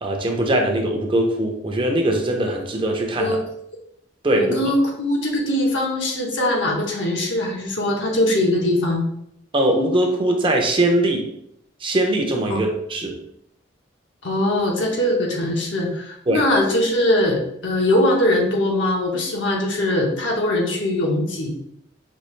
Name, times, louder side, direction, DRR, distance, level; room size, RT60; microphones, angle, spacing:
voice 1, 0.0-3.4 4.2-4.5 9.5-11.3 11.8-13.1 16.3-16.4, right 1 dB, 30° right, 2 dB, 0.6 m, -21 dB
voice 2, 4.3-9.0 12.5-12.6 14.2-21.5, left 1 dB, 70° left, 0 dB, 1.0 m, -21 dB
5.2 x 2.4 x 3.1 m, 0.73 s
head